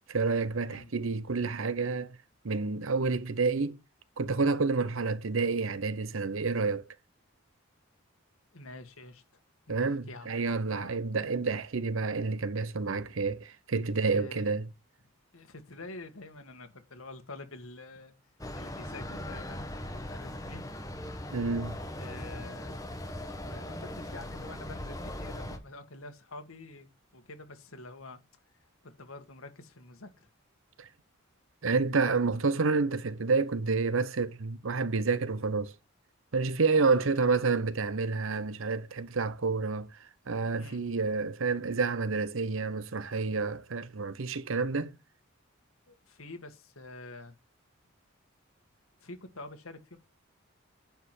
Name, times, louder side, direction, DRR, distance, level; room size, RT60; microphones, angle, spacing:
voice 1, 0.1-2.2 2.4-3.8 4.2-6.8 9.7-14.7 21.3-21.8 30.8-30.9 31.6-35.7 36.3-39.9 40.3-44.9, right 4 dB, 70° right, 0.8 m, -29 dB
voice 2, 8.5-9.4 9.7-11.0 14.1-14.5 15.3-18.1 18.5-20.6 21.9-22.8 23.4-28.2 28.8-30.3 36.8-37.3 40.6-40.8 45.9-47.3 49.0-50.0, left 2 dB, 85° left, 2.0 m, -47 dB
sound 1, 18.4-25.6, left 1 dB, 15° left, 1.5 m, -39 dB
10.0 x 4.9 x 7.6 m
head